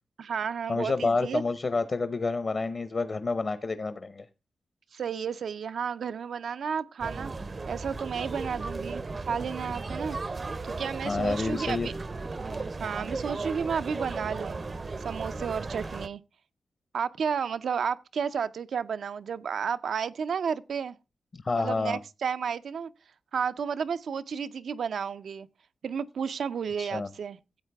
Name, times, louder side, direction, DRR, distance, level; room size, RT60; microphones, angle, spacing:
voice 1, 0.2-1.4 4.9-7.3 7.7-10.2 10.6-11.9 12.8-14.6 15.0-16.2 16.9-21.0 21.6-22.9 23.3-25.5 25.8-27.4, right 6 dB, 80° right, 0.5 m, -32 dB
voice 2, 0.7-4.2 11.0-11.9 21.3-22.0 26.8-27.1, left 3 dB, 45° left, 0.8 m, -29 dB
sound 1, 7.0-16.1, right 3 dB, 35° right, 0.6 m, -35 dB
13.5 x 8.1 x 3.4 m
wide cardioid pair, 130°, 0 cm